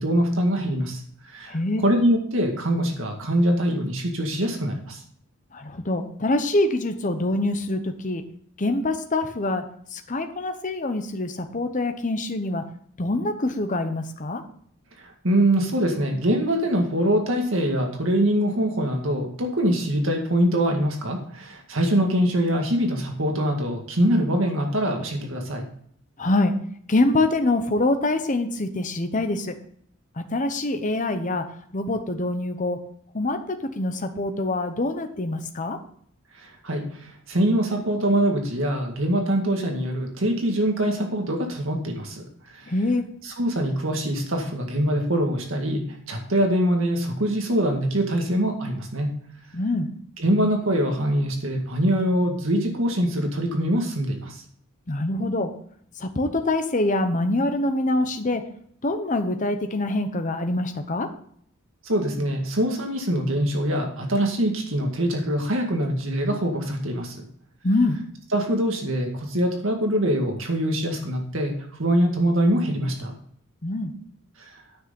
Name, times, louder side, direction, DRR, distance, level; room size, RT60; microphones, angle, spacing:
voice 1, 0.0-1.6 1.8-5.0 15.0-25.7 36.4-42.2 42.5-42.7 43.2-49.1 50.2-54.4 61.8-67.2 68.3-71.5 71.8-73.1 74.4-74.5, right 1 dB, 65° right, 2 dB, 2.0 m, -23 dB
voice 2, 1.5-1.8 5.5-8.2 8.6-9.6 9.9-12.6 13.0-14.4 26.2-26.6 26.9-29.5 30.2-31.4 31.7-32.8 33.1-33.4 33.8-35.8 42.7-43.0 49.5-49.9 54.9-55.5 56.0-58.4 58.8-61.1 67.6-68.0 73.6-73.9, left 2 dB, 35° left, 7 dB, 0.9 m, -25 dB
9.4 x 6.6 x 5.3 m, 0.63 s
head